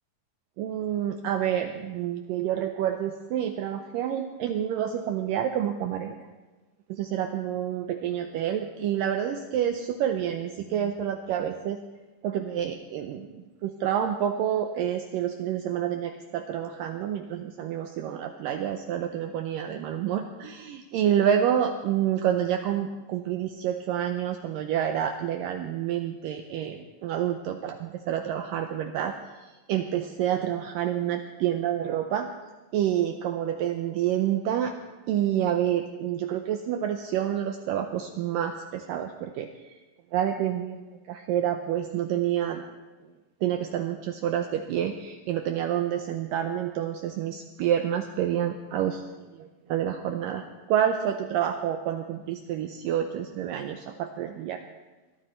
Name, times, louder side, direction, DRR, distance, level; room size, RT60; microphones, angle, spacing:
voice 1, 0.6-6.3 6.9-11.8 12.2-32.3 32.7-34.7 35.1-39.5 40.1-42.6 43.4-54.6, right 10 dB, 90° right, 6 dB, 1.9 m, -28 dB
21.5 x 13.5 x 4.4 m, 1.2 s
omnidirectional pair, 4.8 m